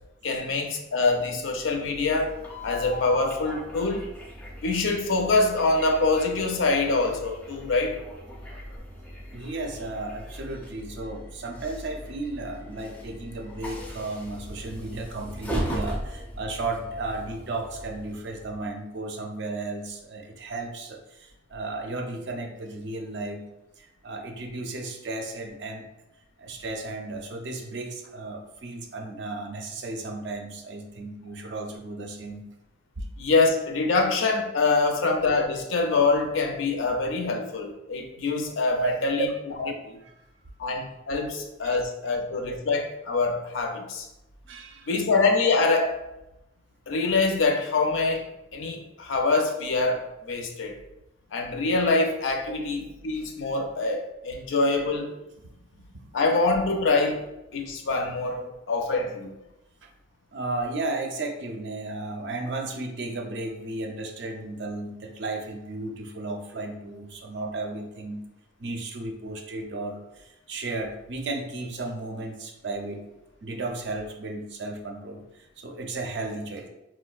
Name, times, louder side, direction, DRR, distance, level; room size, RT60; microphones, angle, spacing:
voice 1, 0.2-2.3 2.6-4.0 4.6-8.0 13.8-13.9 33.2-39.3 39.6-40.0 40.6-44.1 44.9-46.0 46.9-48.3 48.5-50.8 51.3-55.2 56.1-57.2 57.5-58.4 58.7-59.3, left 3 dB, 80° left, 3 dB, 0.5 m, -25 dB
Train, 1.4-18.7, equal, 10° left, 0.4 m, -38 dB
voice 2, 9.3-23.4 23.8-25.8 26.4-32.4 33.0-33.1 37.2-37.3 38.7-39.3 40.0-40.1 41.2-41.4 41.6-41.8 44.5-45.0 53.6-53.7 55.5-56.2 58.4-58.5 59.8-59.9 60.3-68.2 68.6-73.0 73.4-76.7, right 2 dB, 60° right, 3 dB, 0.5 m, -34 dB
4.4 x 2.1 x 2.3 m, 0.92 s
head